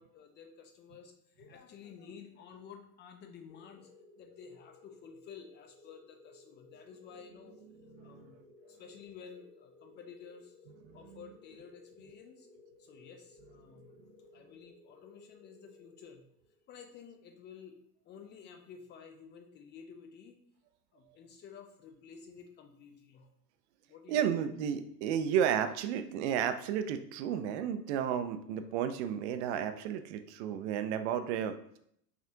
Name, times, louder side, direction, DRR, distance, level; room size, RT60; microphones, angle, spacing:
voice 1, 0.0-3.9 4.1-7.6 8.0-10.6 10.9-12.5 12.8-14.0 14.3-16.2 16.7-20.4 20.9-23.3 23.9-24.3 27.3-27.5 28.6-28.7, left 6 dB, 20° left, 5 dB, 0.5 m, -52 dB
sound 1, 3.5-16.6, left 3 dB, 55° left, 1.5 m, -59 dB
voice 2, 8.0-8.3 10.9-11.0 24.1-31.8, right 9 dB, 45° right, 9 dB, 0.5 m, -32 dB
5.9 x 2.4 x 2.8 m, 0.70 s
figure-of-eight pair, 80°, 49 cm